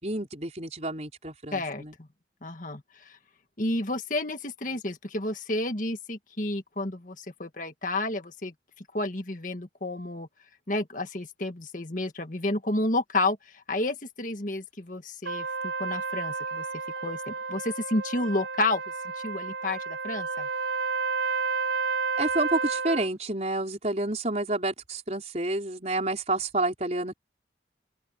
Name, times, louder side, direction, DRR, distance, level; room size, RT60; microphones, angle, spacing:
voice 1, 0.0-2.0 22.2-27.1, right 2 dB, 35° right, 5.7 m, -29 dB
voice 2, 1.5-2.1 2.4-3.2 3.6-8.5 8.9-10.3 10.7-16.7 17.0-18.8 19.2-20.5, left 2 dB, 45° left, 1.9 m, -31 dB
Trumpet, 15.2-23.1, right 4 dB, 90° right, 6.2 m, -31 dB
open air
head